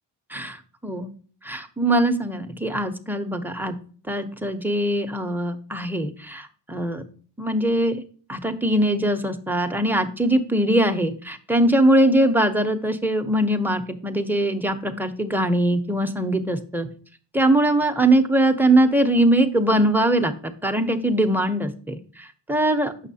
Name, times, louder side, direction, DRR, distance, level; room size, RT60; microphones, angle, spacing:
voice 1, 1.4-3.7 4.1-7.0 7.4-8.0 8.3-16.9 17.3-22.9, right 1 dB, 5° right, 6 dB, 0.7 m, -21 dB
7.3 x 6.0 x 2.7 m, 0.43 s
wide cardioid pair, 90°, 44 cm